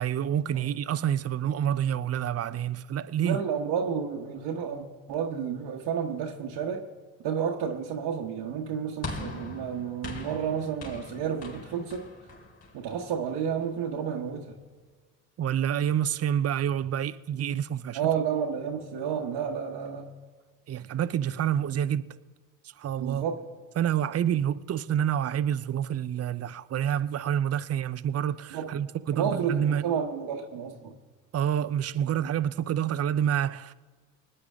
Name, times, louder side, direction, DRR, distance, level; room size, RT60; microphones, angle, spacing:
voice 1, 0.0-3.4 15.4-18.0 20.7-22.0 22.8-23.3 23.8-29.8 31.3-33.7, right 9 dB, 30° right, 0.7 m, -28 dB
voice 2, 3.2-6.9 7.2-12.1 12.7-14.6 17.9-20.2 23.0-23.4 28.5-28.8 29.1-30.9, right 7 dB, 60° right, 1.4 m, -31 dB
sound 1, 9.0-13.5, left 2 dB, 30° left, 4.6 m, -41 dB
25.0 x 9.7 x 3.6 m
hypercardioid pair, 55°, 47 cm